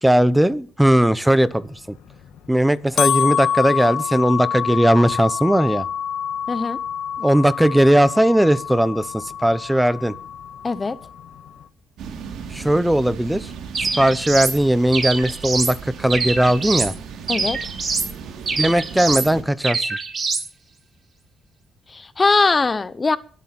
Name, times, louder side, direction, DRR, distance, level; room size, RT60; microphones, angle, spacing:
voice 1, 0.0-2.0 2.5-5.9 7.2-10.2 12.5-13.5 14.0-16.9 18.6-20.0, right 1 dB, 5° right, 16 dB, 0.9 m, -18 dB
sound 1, 1.8-11.6, left 9 dB, 80° left, 1.5 m, -27 dB
voice 2, 6.5-6.8 10.6-11.0 17.3-17.6 21.9-23.2, left 3 dB, 30° left, 16 dB, 0.8 m, -20 dB
sound 2, 12.0-19.4, right 6 dB, 80° right, 2.7 m, -36 dB
sound 3, 13.7-14.6 14.9-15.8 16.1-16.9 17.3-18.1 18.5-19.3 19.6-20.5, right 4 dB, 40° right, 4.7 m, -24 dB
22.5 x 8.4 x 4.3 m, 0.42 s
cardioid pair, 90°, 0 cm